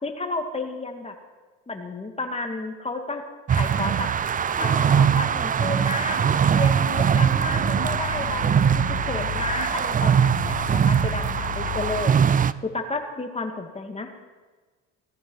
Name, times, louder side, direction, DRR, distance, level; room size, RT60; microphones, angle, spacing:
voice 1, 0.0-1.1 1.7-3.2 3.5-4.1 4.6-6.2 6.5-12.1 12.6-14.1, left 2 dB, 15° left, 4 dB, 2.3 m, -32 dB
sound 1, 3.5-12.5, right 7 dB, 25° right, 0.5 m, -22 dB
sound 2, 5.5-11.7, right 4 dB, 50° right, 4.8 m, -42 dB
sound 3, 7.0-12.1, left 14 dB, 70° left, 1.1 m, -35 dB
18.0 x 13.0 x 5.7 m, 1.3 s
cardioid pair, 105°, 36 cm